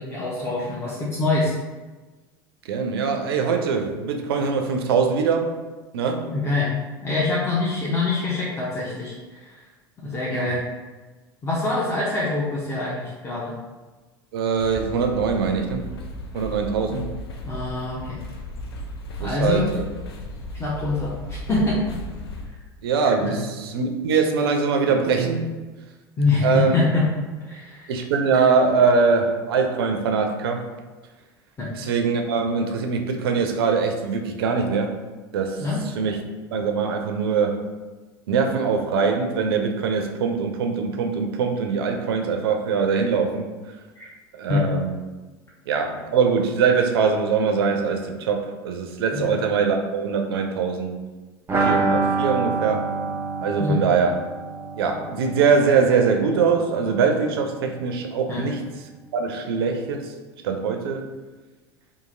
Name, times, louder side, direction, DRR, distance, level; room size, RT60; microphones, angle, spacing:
voice 1, 0.0-1.5 6.3-6.7 7.0-9.6 10.0-10.7 11.4-13.5 17.5-18.2 19.2-19.7 20.6-21.8 23.2-23.4 26.2-27.1 27.4-27.9 31.6-31.7 35.6-35.8 44.5-44.7 49.1-49.3 53.6-53.8 58.3-58.4, left 3 dB, 20° left, -6 dB, 0.6 m, -25 dB
voice 2, 2.6-5.5 5.9-6.3 10.3-10.5 14.3-15.8 16.3-17.1 19.2-19.8 22.8-25.5 26.4-26.8 27.9-30.6 31.7-35.0 35.3-36.2 36.5-37.7 38.3-43.8 44.3-44.9 45.7-51.0 51.6-52.9 53.4-54.2 54.8-58.6 59.1-60.1 60.4-61.1, right 5 dB, 75° right, 4 dB, 0.4 m, -22 dB
sound 1, 14.6-22.4, equal, 85° left, 0.4 m, -35 dB
sound 2, 51.5-57.1 57.3-57.4 57.7-57.8, right 4 dB, 20° right, 0.7 m, -27 dB
2.8 x 2.5 x 2.5 m, 1.3 s
hypercardioid pair, 85°, 13 cm